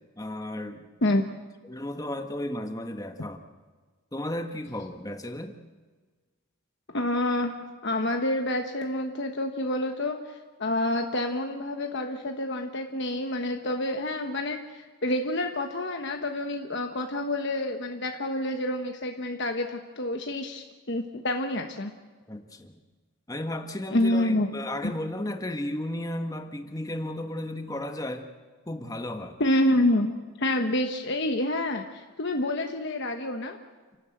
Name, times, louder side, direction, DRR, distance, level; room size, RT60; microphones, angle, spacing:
voice 1, 0.2-0.9 1.6-3.4 4.1-5.5 22.3-22.8 23.3-28.3 28.7-29.4, left 1 dB, 15° left, 5 dB, 1.4 m, -34 dB
voice 2, 6.9-7.6 7.8-21.9 23.9-24.5 29.4-30.1 30.4-33.6, left 1 dB, 55° left, 4 dB, 1.2 m, -28 dB
29.5 x 12.5 x 8.0 m, 1.4 s
head